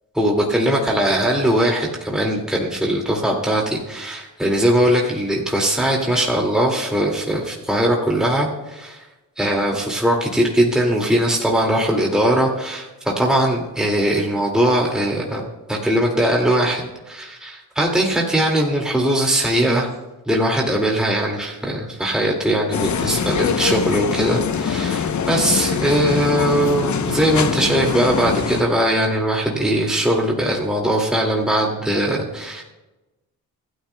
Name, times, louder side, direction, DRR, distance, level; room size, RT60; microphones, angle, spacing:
voice 1, 0.1-9.1 9.4-19.9 20.3-32.6, right 1 dB, ahead, -2 dB, 2.2 m, -20 dB
sound 1, 22.7-28.6, left 7 dB, 50° left, 0.8 m, -23 dB
25.5 x 13.0 x 2.3 m, 1.0 s
cardioid pair, 110°, 37 cm